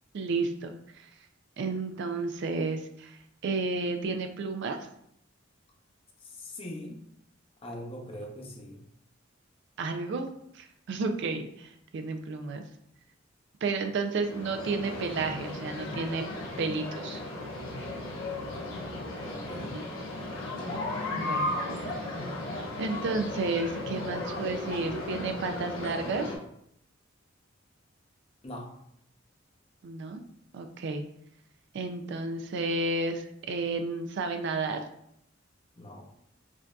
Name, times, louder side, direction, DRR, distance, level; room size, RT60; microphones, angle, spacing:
voice 1, 0.1-1.1 1.6-4.9 9.8-10.3 10.5-12.6 13.6-16.2 16.6-17.2 19.7-19.8 21.1-22.1 22.8-26.3 29.8-30.2 30.5-31.0 31.7-34.8, right 3 dB, 60° right, 6 dB, 0.4 m, -32 dB
voice 2, 6.2-7.0 7.6-8.8 18.5-18.9 19.2-19.8 28.4-28.7 35.8-36.0, left 1 dB, 30° left, 0 dB, 0.6 m, -42 dB
sound 1, 14.2-26.4, left 2 dB, 90° left, 0.9 m, -35 dB
4.9 x 2.6 x 2.3 m, 0.73 s
head